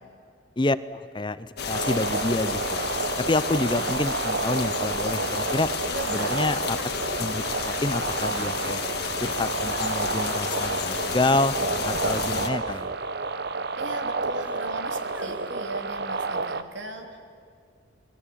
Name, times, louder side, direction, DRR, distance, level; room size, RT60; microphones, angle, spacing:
voice 1, 0.6-2.9 3.2-5.7 6.1-6.8 7.1-8.8 9.2-11.5 11.8-12.9, left 2 dB, 25° left, 15 dB, 0.6 m, -28 dB
sound 1, 1.6-12.5, left 5 dB, 55° left, 1.8 m, -31 dB
sound 2, 1.7-16.6, right 3 dB, 55° right, 1.0 m, -30 dB
Crying sobbing, 3.3-3.5 4.8-5.3 5.8-5.9 6.1-6.4 6.8-7.1 7.6-7.9 8.3-8.8 9.7-10.0 10.5-11.0 12.0-12.9 14.4-14.8 15.1-15.6, right 1 dB, 10° right, 1.2 m, -46 dB
voice 2, 5.9-6.4 13.8-17.2, right 1 dB, 75° right, 4 dB, 3.3 m, -38 dB
28.5 x 21.5 x 8.6 m, 2.2 s
head